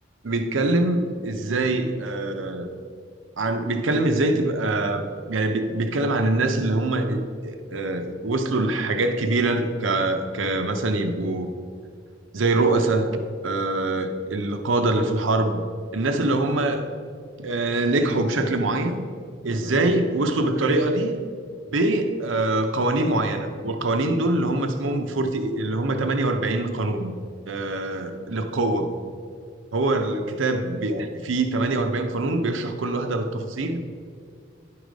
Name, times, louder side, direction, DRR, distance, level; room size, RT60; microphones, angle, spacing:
voice 1, 0.2-2.7 3.4-11.5 12.3-15.6 15.9-16.9 17.4-19.0 19.4-21.2 21.7-27.1 27.5-28.9 29.7-34.0, right 2 dB, 80° right, 7 dB, 0.7 m, -24 dB
10.5 x 4.9 x 5.1 m, 2.2 s
head